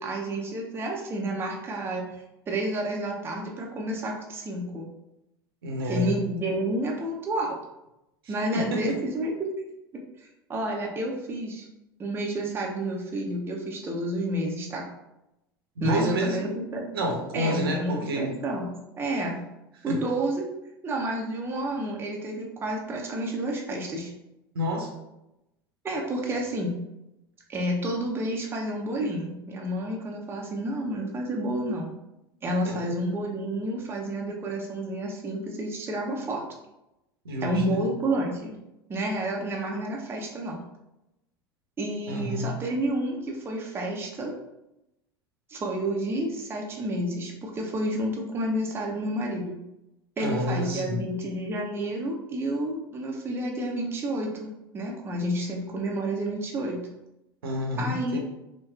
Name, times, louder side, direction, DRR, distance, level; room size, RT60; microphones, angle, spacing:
voice 1, 0.0-2.1 2.5-4.9 5.8-7.6 8.3-9.5 10.2-11.7 12.0-14.8 15.8-16.9 17.3-18.7 19.0-19.4 19.8-20.5 20.8-24.1 25.8-26.7 27.5-31.9 32.4-36.4 37.4-38.6 38.9-40.6 41.8-44.3 45.5-49.6 50.2-56.9 57.8-58.2, right 1 dB, 20° right, -1 dB, 0.6 m, -30 dB
voice 2, 5.6-6.1 8.2-9.0 15.8-16.4 16.9-18.3 19.9-20.0 24.5-24.9 32.7-32.8 37.2-37.8 42.1-42.5 50.2-51.0 57.4-58.2, equal, 70° right, 0 dB, 0.7 m, -29 dB
4.2 x 2.2 x 2.3 m, 0.90 s
figure-of-eight pair, 75°, 13 cm